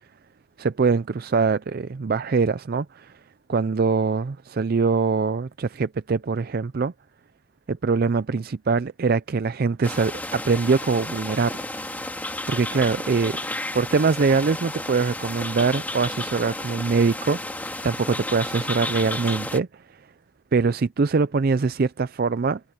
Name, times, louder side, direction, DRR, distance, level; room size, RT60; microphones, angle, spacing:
voice 1, 0.6-3.1 3.5-6.9 7.7-11.6 12.5-13.4 13.7-20.0 20.5-22.6, right 4 dB, 50° right, 0.4 m, -23 dB
sound 1, 9.8-19.6, left 1 dB, 10° left, 2.1 m, -32 dB
head